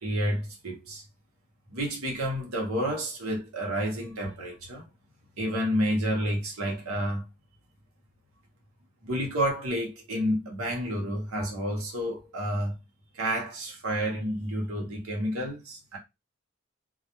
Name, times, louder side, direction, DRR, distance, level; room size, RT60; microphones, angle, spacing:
voice 1, 0.0-1.0 1.7-4.8 5.4-7.2 9.0-12.8 13.1-16.0, equal, 90° right, 0.9 m, -30 dB
2.3 x 2.1 x 2.9 m
head